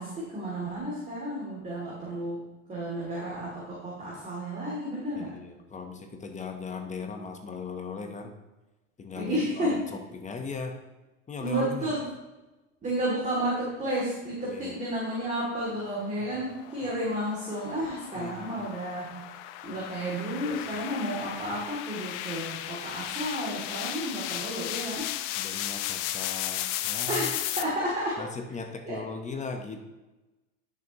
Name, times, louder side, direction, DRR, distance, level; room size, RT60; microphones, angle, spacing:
voice 1, 0.0-2.4 2.7-5.4 9.1-9.9 11.4-12.0 12.8-19.2 19.6-25.1 27.1-28.2 28.9-29.0, right 1 dB, 20° right, -6 dB, 2.8 m, -32 dB
voice 2, 5.2-8.3 9.0-10.8 11.3-11.9 14.5-14.8 16.8-16.9 18.1-18.6 20.7-20.8 25.3-27.3 28.2-29.8, left 4 dB, 20° left, 5 dB, 1.1 m, -38 dB
sound 1, 15.6-27.6, left 13 dB, 65° left, 0.7 m, -35 dB
11.5 x 6.8 x 3.1 m, 1.1 s
supercardioid pair, 115°, 39 cm